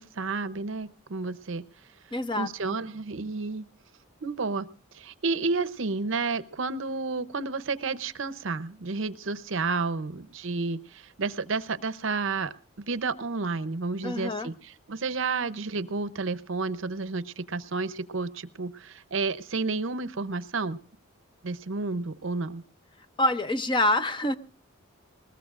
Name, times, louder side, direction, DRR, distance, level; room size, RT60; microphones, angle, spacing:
voice 1, 0.0-1.6 2.4-3.7 4.2-4.7 4.9-20.8 21.4-22.6, right 4 dB, 65° right, 14 dB, 0.7 m, -31 dB
voice 2, 2.1-2.8 14.0-14.5 23.2-24.4, left 1 dB, 25° left, 11 dB, 0.6 m, -26 dB
20.5 x 20.0 x 2.5 m, 0.38 s
head